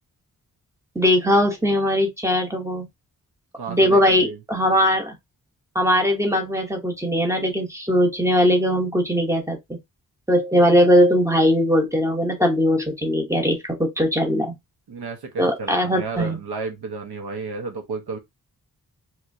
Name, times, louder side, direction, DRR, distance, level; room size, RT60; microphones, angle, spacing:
voice 1, 0.9-2.9 3.7-5.2 5.7-9.8 10.3-14.6 15.4-16.4, equal, 10° right, 0.8 m, -20 dB
voice 2, 3.5-4.4 14.9-18.2, right 4 dB, 85° right, 1.0 m, -32 dB
3.1 x 3.0 x 2.6 m
wide cardioid pair, 165°, 37 cm